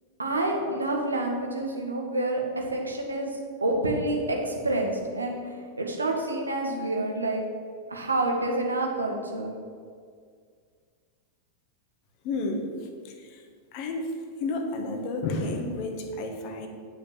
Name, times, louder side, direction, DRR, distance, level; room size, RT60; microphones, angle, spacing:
voice 1, 0.2-3.3 3.6-7.4 7.9-9.5, right 2 dB, 80° right, 1 dB, 1.7 m, -28 dB
voice 2, 12.2-13.4 13.7-14.1 14.4-16.7, left 2 dB, 45° left, 4 dB, 1.4 m, -31 dB
9.8 x 5.7 x 7.5 m, 2.1 s
figure-of-eight pair, 90°, 0 cm